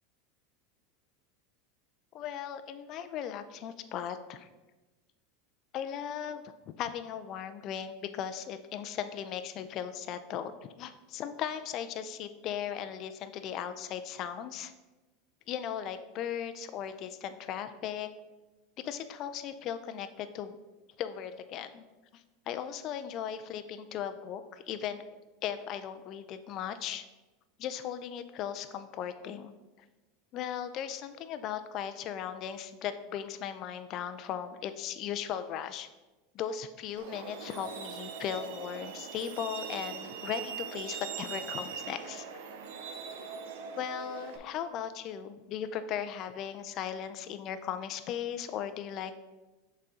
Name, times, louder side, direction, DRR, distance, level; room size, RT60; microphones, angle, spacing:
voice 1, 2.1-4.5 5.7-6.4 6.8-14.7 15.5-18.1 18.8-20.6 21.0-21.8 22.1-25.0 25.4-27.0 27.6-29.5 30.3-35.9 36.3-42.3 43.8-49.1, left 9 dB, 45° left, 9 dB, 0.4 m, -37 dB
Truck, 37.0-44.4, right 6 dB, 80° right, 0.7 m, -41 dB
6.5 x 4.1 x 3.7 m, 1.1 s
supercardioid pair, 135°, 0 cm